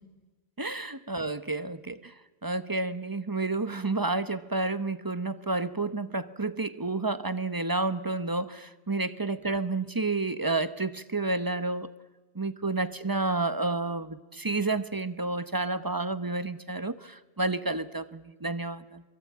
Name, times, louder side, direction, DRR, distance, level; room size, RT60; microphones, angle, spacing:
voice 1, 0.6-2.1 2.4-11.9 12.3-19.0, right 3 dB, 20° right, 13 dB, 0.9 m, -30 dB
26.5 x 23.5 x 8.8 m, 1.2 s
omnidirectional pair, 1.1 m